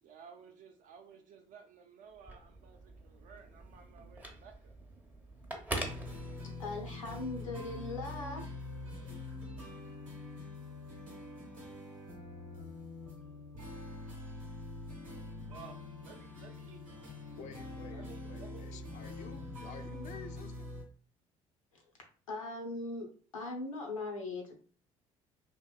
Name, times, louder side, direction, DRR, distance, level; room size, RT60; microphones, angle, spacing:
voice 1, 0.0-4.7 15.5-16.8 17.9-18.8, right 7 dB, 50° right, 5 dB, 0.6 m, -55 dB
Telephone, 2.1-6.9, right 1 dB, 10° right, 0.7 m, -44 dB
sound 1, 5.7-20.8, left 2 dB, 85° right, 0.8 m, -45 dB
voice 2, 6.6-8.5 21.7-21.8 22.3-24.6, left 2 dB, 85° left, 1 dB, 0.7 m, -40 dB
voice 3, 17.3-20.7, left 6 dB, 45° left, 8 dB, 0.4 m, -50 dB
2.9 x 2.7 x 2.3 m, 0.41 s
figure-of-eight pair, 55°, 17 cm